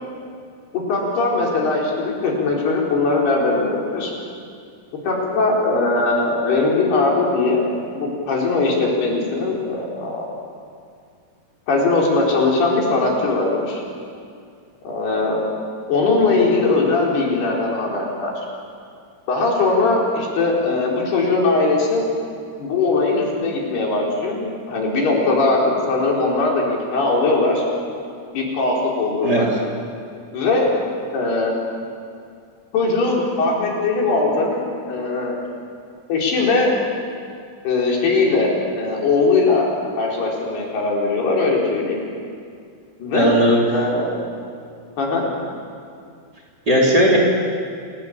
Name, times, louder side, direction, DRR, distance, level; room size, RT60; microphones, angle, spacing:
voice 1, 0.7-4.1 5.0-7.7 7.9-10.3 11.7-13.8 14.8-15.4 15.9-18.3 19.3-22.1 22.6-25.6 25.9-27.6 28.3-29.5 30.3-30.7 31.1-31.6 32.7-35.4 36.1-36.7 37.6-38.5 38.7-39.7 40.0-42.0 43.0-43.3 43.7-44.1 45.0-45.3, left 3 dB, 80° left, -2 dB, 6.4 m, -20 dB
voice 2, 43.1-43.6 46.7-47.2, equal, 25° right, -2 dB, 4.4 m, -16 dB
28.0 x 19.0 x 8.8 m, 2.3 s
omnidirectional pair, 4.5 m